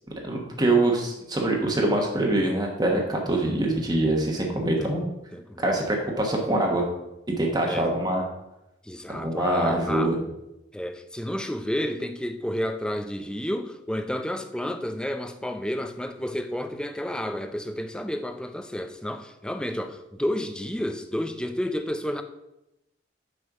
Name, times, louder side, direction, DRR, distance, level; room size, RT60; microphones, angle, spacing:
voice 1, 0.2-5.0 5.6-6.9 7.4-8.2 9.1-10.2, right 2 dB, 25° right, 0 dB, 1.2 m, -24 dB
voice 2, 5.3-5.9 7.7-7.9 8.8-10.2 10.7-22.2, equal, 5° left, 7 dB, 0.5 m, -31 dB
6.5 x 5.5 x 5.9 m, 0.91 s
head